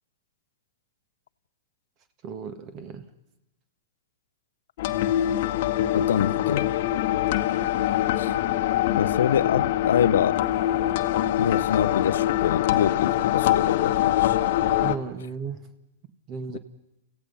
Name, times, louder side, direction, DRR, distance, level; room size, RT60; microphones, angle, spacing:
voice 1, 2.2-3.1 14.8-15.6 16.3-16.6, right 5 dB, 40° right, 1.6 m, -34 dB
sound 1, 4.8-15.0, left 12 dB, 55° left, 1.1 m, -24 dB
voice 2, 5.9-6.7 8.2-8.3 9.0-10.4 11.4-14.4 16.5-16.6, left 9 dB, 70° left, 0.6 m, -25 dB
30.0 x 15.5 x 5.6 m
hypercardioid pair, 110°, 0 cm